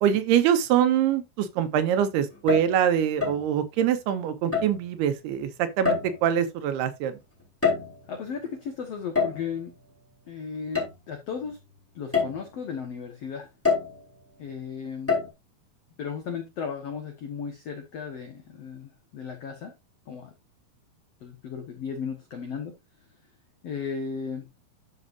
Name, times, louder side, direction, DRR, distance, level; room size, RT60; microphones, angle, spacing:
voice 1, 0.0-7.2, right 9 dB, 90° right, 3.0 m, -24 dB
sound 1, 2.3-2.8 3.2-3.5 4.5-4.8 5.8-6.3 7.4-8.1 9.1-9.5 10.7-10.9 11.4-11.5 12.1-12.5 13.6-14.0 15.1-15.3, left 5 dB, 5° left, 3.2 m, -26 dB
voice 2, 8.1-9.7 10.3-11.6 12.0-13.5 14.4-15.2 16.0-19.7 20.1-20.3 21.2-22.7 23.6-24.5, left 6 dB, 55° left, 1.8 m, -35 dB
12.5 x 5.5 x 2.6 m
omnidirectional pair, 4.6 m